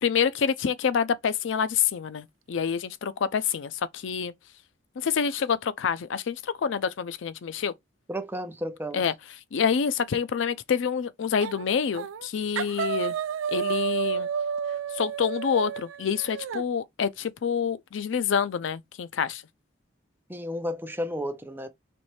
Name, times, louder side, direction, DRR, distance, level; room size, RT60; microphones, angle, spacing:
voice 1, 0.0-4.3 5.0-7.7 8.9-9.1 9.5-13.2 13.5-14.3 14.9-19.4, left 7 dB, 70° left, 0.4 m, -27 dB
voice 2, 8.1-9.1 20.3-21.7, equal, 10° right, 0.7 m, -32 dB
sound 1, 11.4-11.7 11.9-12.3 12.6-16.6, right 7 dB, 85° right, 0.4 m, -30 dB
4.3 x 3.1 x 3.1 m
head